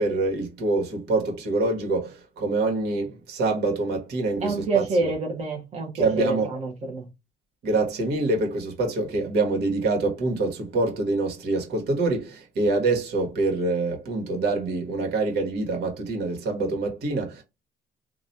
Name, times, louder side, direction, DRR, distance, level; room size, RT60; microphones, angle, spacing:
voice 1, 0.0-5.1 5.9-6.5 7.6-17.4, right 3 dB, 75° right, 1.6 m, -25 dB
voice 2, 4.4-7.0, right 3 dB, 40° right, 1.1 m, -27 dB
3.0 x 2.5 x 4.1 m
cardioid pair, 110°, 17 cm